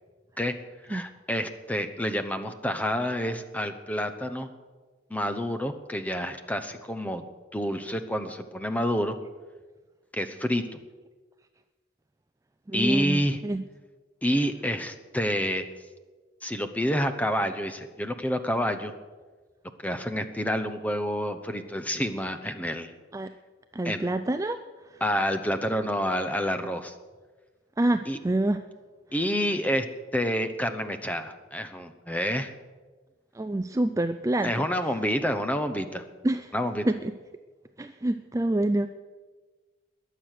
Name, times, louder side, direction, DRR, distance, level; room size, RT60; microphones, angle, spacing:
voice 1, 0.9-4.5 5.1-7.2 7.5-9.2 10.1-10.8 12.7-13.4 14.2-15.6 16.4-18.9 19.8-22.9 23.8-24.1 25.0-27.0 28.1-28.2 29.1-29.9 30.1-32.5 34.4-36.0 36.5-36.9, equal, 10° left, 9 dB, 0.8 m, -28 dB
voice 2, 12.7-13.6 23.1-23.3 23.7-24.6 24.9-25.0 27.8-28.6 33.3-34.5 36.2-36.5 36.9-37.1 37.8-38.9, right 1 dB, 15° right, 9 dB, 0.4 m, -27 dB
21.0 x 7.7 x 6.5 m, 1.4 s
head